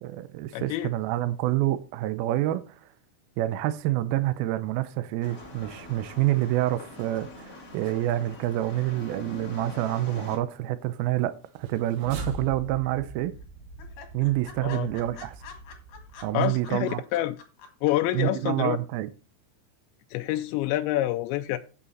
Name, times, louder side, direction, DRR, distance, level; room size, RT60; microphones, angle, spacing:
voice 1, 0.0-2.8 3.4-13.4 14.1-15.4 16.2-17.0 18.1-19.1, right 15 dB, 80° right, 2.2 m, -27 dB
voice 2, 0.5-0.9 14.6-14.9 16.3-17.4 17.8-18.8 20.1-21.6, left 14 dB, 90° left, 2.9 m, -27 dB
sound 1, 5.2-10.4, left 2 dB, 35° left, 1.4 m, -44 dB
sound 2, 11.5-16.8, right 2 dB, 65° right, 2.6 m, -42 dB
sound 3, 12.1-12.8 13.0-13.1 13.4-13.5 13.8-18.2 18.5-18.6, left 6 dB, 60° left, 3.3 m, -46 dB
8.8 x 8.3 x 4.1 m
omnidirectional pair, 5.0 m